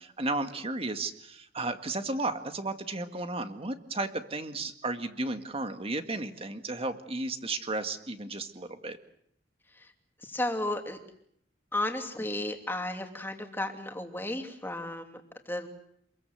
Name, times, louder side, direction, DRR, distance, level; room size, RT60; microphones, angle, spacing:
voice 1, 0.0-9.0, right 2 dB, 30° right, 8 dB, 1.9 m, -34 dB
voice 2, 10.2-11.0 11.7-15.7, left 1 dB, 10° left, 4 dB, 2.9 m, -34 dB
27.5 x 22.0 x 8.0 m, 0.70 s
head